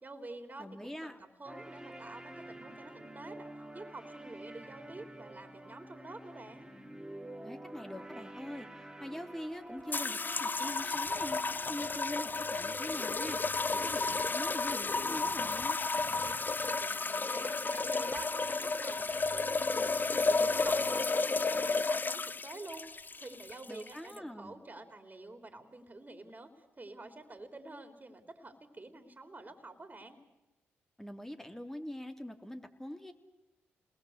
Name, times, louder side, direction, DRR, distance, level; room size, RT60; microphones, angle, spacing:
voice 1, 0.0-6.7 16.2-26.5 26.8-30.2, right 2 dB, 30° right, 7 dB, 3.9 m, -48 dB
voice 2, 0.6-1.2 7.4-13.4 13.7-15.8 23.7-24.6 31.0-33.1, equal, 5° left, 6 dB, 3.3 m, -43 dB
sound 1, 1.4-13.5, right 1 dB, 10° right, 3.0 m, -49 dB
sound 2, 9.9-24.2, left 3 dB, 35° left, 0.8 m, -32 dB
28.5 x 20.5 x 8.2 m, 0.95 s
hypercardioid pair, 45°, 6 cm